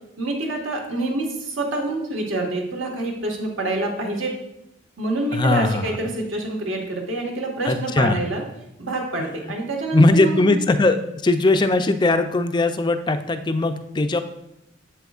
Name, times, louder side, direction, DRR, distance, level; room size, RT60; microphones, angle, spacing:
voice 1, 0.2-4.3 5.0-8.4 8.8-10.6, right 2 dB, 75° right, 0 dB, 1.5 m, -27 dB
voice 2, 5.3-5.9 7.7-8.2 9.2-9.3 9.9-11.0 11.2-14.2, left 2 dB, 20° left, 8 dB, 0.4 m, -19 dB
7.9 x 7.5 x 2.4 m, 0.87 s
head